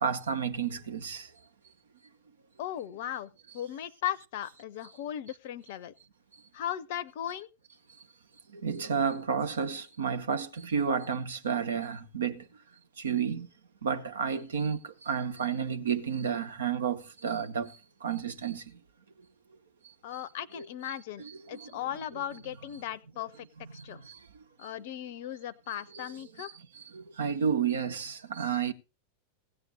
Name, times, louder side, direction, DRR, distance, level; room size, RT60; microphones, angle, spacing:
voice 1, 0.0-1.3 8.5-12.4 13.0-13.5 13.8-18.6 20.5-20.9 21.2-22.4 23.6-24.2 25.9-28.7, right 7 dB, 65° right, 0.9 m, -32 dB
voice 2, 2.6-5.9 6.5-7.5 20.0-23.5 23.8-24.0 24.6-26.5, left 11 dB, 50° left, 0.6 m, -37 dB
16.0 x 8.9 x 3.9 m
figure-of-eight pair, 90°, 0 cm